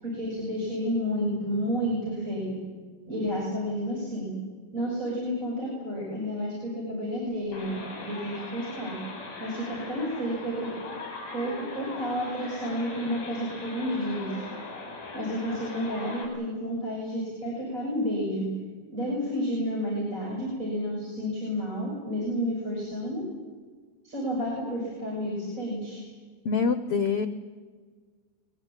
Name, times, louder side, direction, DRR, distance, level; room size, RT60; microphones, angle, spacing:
voice 1, 0.0-2.6 3.1-4.3 4.7-8.9 9.4-10.7 11.3-14.4 15.1-18.4 18.9-23.2 24.0-26.0, equal, 20° right, -4 dB, 6.8 m, -31 dB
sound 1, 7.5-16.3, left 3 dB, 70° left, 7.6 m, -40 dB
voice 2, 26.4-27.3, left 5 dB, 90° left, 11 dB, 1.2 m, -25 dB
23.0 x 22.0 x 9.1 m, 1.5 s
omnidirectional pair, 4.2 m